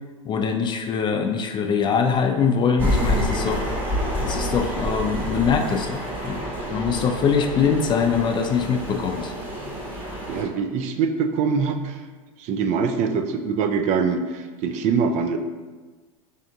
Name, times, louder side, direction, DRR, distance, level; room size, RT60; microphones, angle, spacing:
voice 1, 0.3-3.7 4.2-6.4 6.7-9.3, left 6 dB, 25° left, 5 dB, 0.3 m, -23 dB
sound 1, 2.8-10.4, equal, 10° right, 0.9 m, -28 dB
voice 2, 10.3-12.0 12.4-15.4, right 5 dB, 40° right, 6 dB, 0.4 m, -23 dB
3.4 x 2.7 x 3.6 m, 1.3 s
hypercardioid pair, 100°, 18 cm